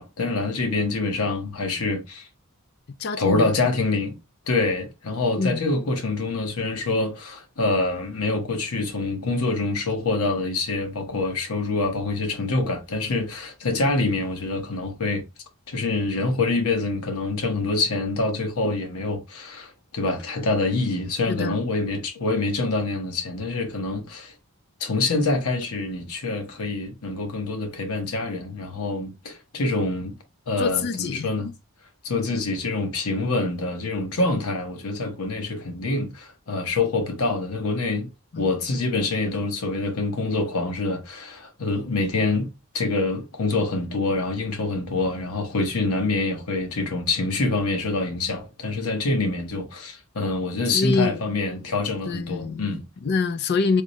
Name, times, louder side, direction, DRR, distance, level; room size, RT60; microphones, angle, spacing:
voice 1, 0.0-2.3 3.2-4.1 4.5-15.2 15.7-24.3 24.8-30.1 30.5-31.5 32.0-38.1 38.3-42.5 42.7-52.8, left 3 dB, 85° left, 1.0 m, -26 dB
voice 2, 3.0-3.5 5.4-5.6 21.3-21.6 30.6-31.3 38.3-38.5 50.7-51.2 52.1-53.8, left 4 dB, 50° left, 0.4 m, -25 dB
3.6 x 2.7 x 3.0 m
head